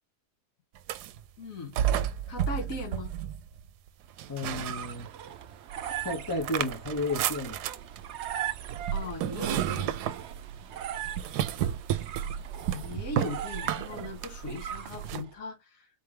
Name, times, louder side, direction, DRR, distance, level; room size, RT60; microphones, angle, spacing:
sound 1, 0.8-1.2 1.8-3.7 4.2-5.3 5.7-15.2, right 10 dB, 85° right, 1.1 m, -32 dB
voice 1, 1.4-1.8 2.3-3.1 8.9-10.0 12.7-15.9, left 2 dB, 55° left, 2.0 m, -38 dB
sound 2, 4.2-15.3, right 10 dB, 60° right, 0.7 m, -40 dB
voice 2, 4.3-5.1 6.0-7.6, left 2 dB, 20° left, 0.6 m, -32 dB
4.4 x 3.3 x 3.3 m
omnidirectional pair, 1.7 m